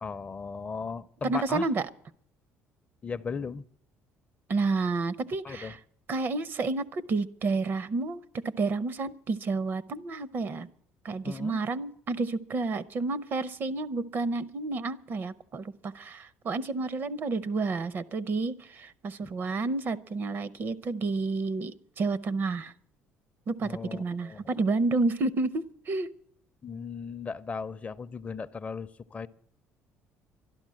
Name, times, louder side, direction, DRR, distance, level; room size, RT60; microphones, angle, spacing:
voice 1, 0.0-1.7 3.0-3.6 5.4-5.7 11.2-11.6 19.2-19.3 23.6-24.5 26.6-29.3, left 5 dB, 30° left, 14 dB, 0.5 m, -37 dB
voice 2, 1.2-1.8 4.5-5.8 6.1-10.7 11.0-22.7 23.5-26.1, right 3 dB, 45° right, 19 dB, 0.6 m, -30 dB
12.5 x 11.5 x 7.5 m, 0.67 s
cardioid pair, 100°, 5 cm